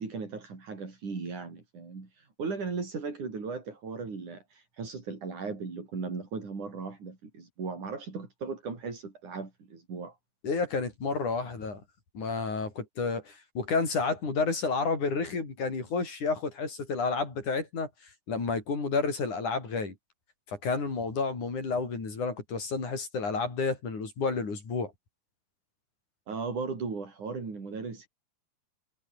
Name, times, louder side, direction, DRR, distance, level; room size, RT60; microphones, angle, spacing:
voice 1, 0.0-10.2 26.3-28.1, right 4 dB, 80° right, 7.2 m, -37 dB
voice 2, 10.4-11.8 12.1-17.9 18.3-20.0 20.5-24.9, left 4 dB, 80° left, 7.7 m, -30 dB
omnidirectional pair, 3.4 m